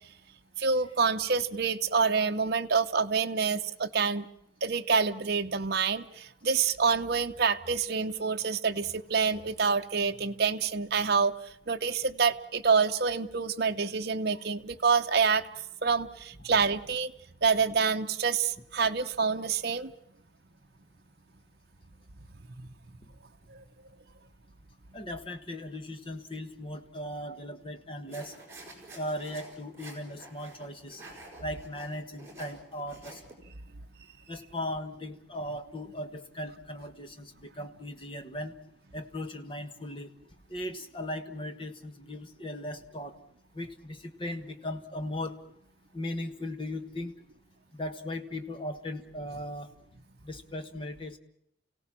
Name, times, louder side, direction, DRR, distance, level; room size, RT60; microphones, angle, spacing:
voice 1, 0.6-4.3 4.6-11.3 11.7-15.5 15.8-17.1 17.4-19.9 22.6-22.7 23.5-23.6, right 5 dB, 50° right, 6 dB, 0.9 m, -27 dB
voice 2, 24.9-28.3 28.9-31.0 31.4-33.2 34.3-38.5 38.9-40.1 40.5-43.1 43.5-45.4 45.9-47.1 47.7-49.7 50.2-51.2, left 1 dB, 25° left, 8 dB, 1.4 m, -38 dB
sound 1, 28.1-33.3, right 2 dB, 15° right, 5.9 m, -48 dB
29.0 x 17.0 x 7.4 m, 0.78 s
head